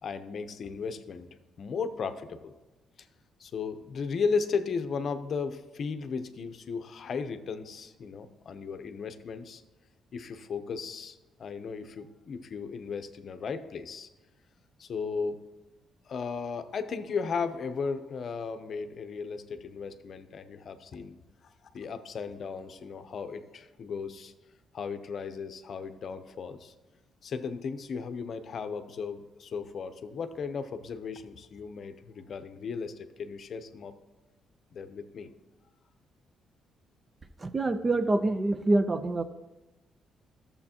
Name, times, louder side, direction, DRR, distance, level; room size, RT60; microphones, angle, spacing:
voice 1, 0.0-1.3 1.6-2.5 3.0-3.1 3.4-9.6 10.1-14.1 14.8-15.4 16.1-21.2 21.7-24.3 24.7-26.7 27.2-33.9 34.7-35.3, left 5 dB, 55° left, 9 dB, 0.7 m, -35 dB
voice 2, 37.4-39.2, right 2 dB, 30° right, 11 dB, 0.6 m, -26 dB
12.0 x 7.1 x 2.9 m, 1.1 s
cardioid pair, 90°, 0 cm